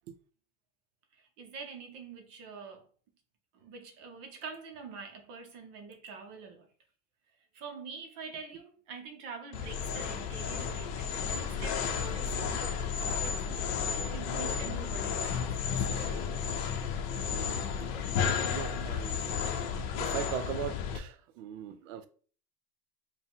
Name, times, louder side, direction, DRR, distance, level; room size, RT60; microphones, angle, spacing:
voice 1, 1.1-2.9 3.5-6.7 7.5-16.7, right 5 dB, 35° right, 0.5 m, -46 dB
sound 1, 9.5-21.0, left 6 dB, 55° left, 0.7 m, -32 dB
voice 2, 18.4-19.5 20.0-22.1, right 9 dB, 75° right, 0.6 m, -39 dB
4.7 x 2.1 x 3.6 m
supercardioid pair, 175°, 38 cm